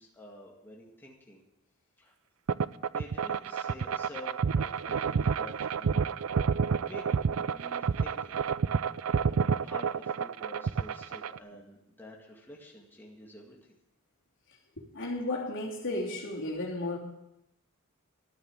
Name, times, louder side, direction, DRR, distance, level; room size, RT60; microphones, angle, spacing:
voice 1, 0.0-1.4 2.0-2.1 2.9-6.1 6.8-8.4 8.9-13.7, left 1 dB, 10° left, -2 dB, 2.1 m, -49 dB
sound 1, 2.5-11.4, right 6 dB, 70° right, 0.4 m, -29 dB
voice 2, 14.8-17.0, left 2 dB, 60° left, -2 dB, 3.2 m, -34 dB
13.0 x 8.6 x 9.0 m, 0.89 s
head